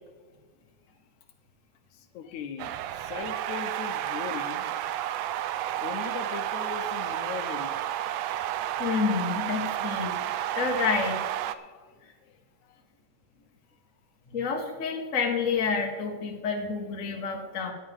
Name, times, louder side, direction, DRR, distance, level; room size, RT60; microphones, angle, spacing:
voice 1, 1.9-4.8 5.6-8.3 11.5-12.0 12.6-12.8, left 7 dB, 80° left, 7 dB, 2.2 m, -40 dB
sound 1, 2.6-11.5, right 12 dB, 80° right, 1.6 m, -31 dB
voice 2, 8.8-11.3 14.3-17.7, left 5 dB, 35° left, 1 dB, 1.4 m, -29 dB
17.5 x 10.5 x 3.6 m, 1.4 s
omnidirectional pair, 3.4 m